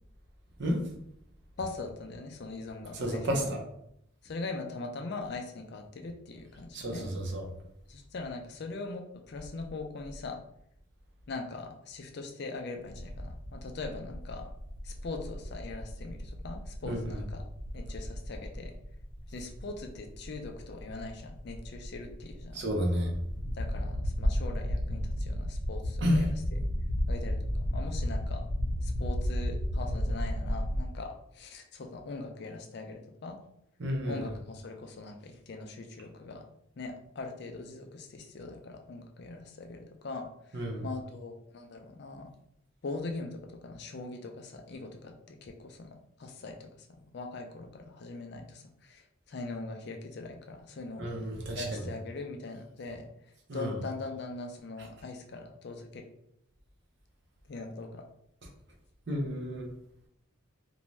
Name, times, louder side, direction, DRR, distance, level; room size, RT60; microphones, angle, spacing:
voice 1, 1.6-3.5 4.2-7.1 7.9-10.4 11.3-14.5 14.8-17.4 17.7-18.7 19.3-22.6 23.5-26.0 27.1-27.4 27.6-28.4 28.8-33.4 34.1-36.4 36.8-42.3 42.8-45.9 46.2-46.7 47.1-51.0 51.6-53.1 53.5-56.0 57.5-58.0, left 3 dB, 50° left, 4 dB, 0.4 m, -41 dB
voice 2, 2.9-3.6 6.7-7.4 16.8-17.2 22.5-23.1 26.0-26.3 33.8-34.3 40.5-40.9 51.0-51.9 53.5-53.8 59.1-59.7, equal, 55° right, 1 dB, 0.6 m, -31 dB
sound 1, 12.9-30.8, equal, 75° left, 0.9 m, -34 dB
2.5 x 2.2 x 3.1 m, 0.75 s
head